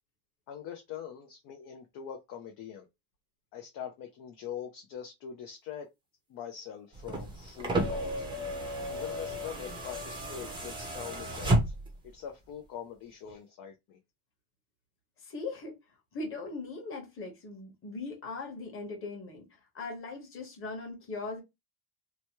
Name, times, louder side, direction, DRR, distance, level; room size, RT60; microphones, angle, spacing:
voice 1, 0.5-2.9 3.5-5.9 6.3-8.3 8.6-11.5 12.1-14.0, left 9 dB, 45° left, 0.6 m, -43 dB
sound 1, 6.9-12.1 13.3-13.4, right 1 dB, 10° right, 0.7 m, -32 dB
voice 2, 15.2-15.8 16.1-21.4, left 3 dB, 30° left, 1.2 m, -39 dB
3.0 x 2.2 x 2.9 m
cardioid pair, 150°, 46 cm